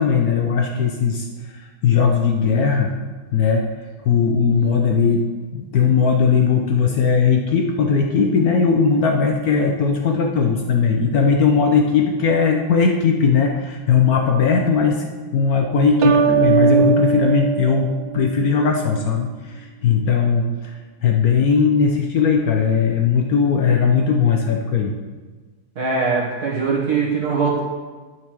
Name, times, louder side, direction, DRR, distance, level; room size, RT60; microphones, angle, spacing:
voice 1, 0.0-2.9 3.3-3.7 4.0-5.2 5.5-15.0 15.3-20.7 21.0-25.0, left 5 dB, 70° left, 2 dB, 0.9 m, -18 dB
sound 1, 16.0-18.7, right 6 dB, 70° right, 1.4 m, -19 dB
voice 2, 25.7-27.6, right 5 dB, 50° right, -5 dB, 1.8 m, -21 dB
9.6 x 4.7 x 6.0 m, 1.4 s
omnidirectional pair, 2.3 m